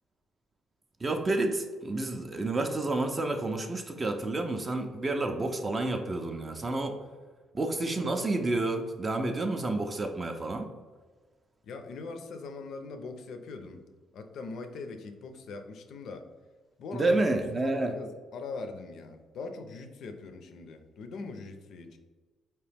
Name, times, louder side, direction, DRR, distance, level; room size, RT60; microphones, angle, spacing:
voice 1, 1.0-7.0 7.5-10.7 16.9-18.0, right 2 dB, 20° right, 5 dB, 0.4 m, -30 dB
voice 2, 11.6-13.8 14.1-16.3 16.8-17.4 17.6-22.0, left 4 dB, 65° left, 6 dB, 0.5 m, -41 dB
4.7 x 2.9 x 3.3 m, 1.4 s
cardioid pair, 150°, 0 cm